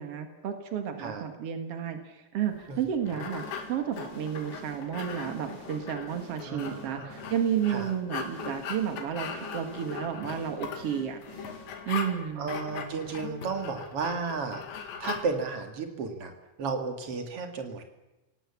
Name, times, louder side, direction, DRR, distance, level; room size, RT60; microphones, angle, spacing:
voice 1, 0.0-11.2 11.8-12.5, right 8 dB, 80° right, 6 dB, 1.3 m, -32 dB
sound 1, 2.6-15.2, left 6 dB, 70° left, 4.2 m, -40 dB
sound 2, 3.3-12.1, left 1 dB, 20° left, 4.1 m, -47 dB
voice 2, 6.5-7.2 7.7-7.9 12.4-16.3 16.6-17.8, right 4 dB, 45° right, 5 dB, 2.2 m, -33 dB
27.5 x 18.0 x 7.2 m, 1.0 s
omnidirectional pair, 5.4 m